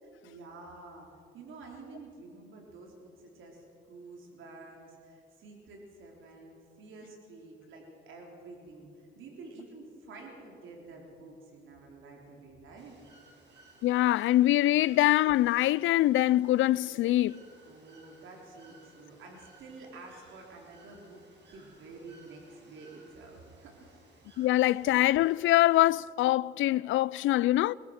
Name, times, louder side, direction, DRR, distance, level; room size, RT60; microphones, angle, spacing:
voice 1, 0.0-1.1 1.3-13.0 17.6-24.0, right 3 dB, 80° right, 3.7 m, -49 dB
Bird / Water, 12.8-25.9, right 2 dB, 60° right, 6.3 m, -59 dB
voice 2, 13.8-17.4 24.4-27.7, left 15 dB, 80° left, 0.4 m, -24 dB
22.0 x 21.5 x 6.5 m
cardioid pair, 90°, 20 cm